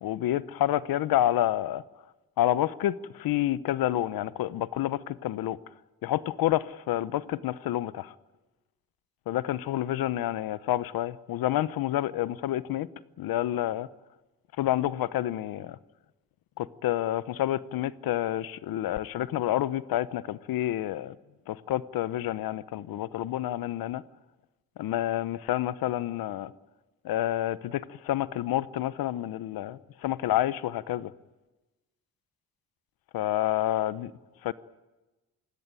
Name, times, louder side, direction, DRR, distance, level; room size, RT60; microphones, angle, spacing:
voice 1, 0.0-1.8 2.4-5.6 6.0-8.1 9.3-12.9 13.2-13.9 14.6-15.8 16.6-21.2 21.5-24.0 24.8-26.5 27.0-31.1 33.1-34.1 34.4-34.5, left 13 dB, 85° left, 0.9 m, -29 dB
27.5 x 16.5 x 9.1 m
cardioid pair, 95°, 35 cm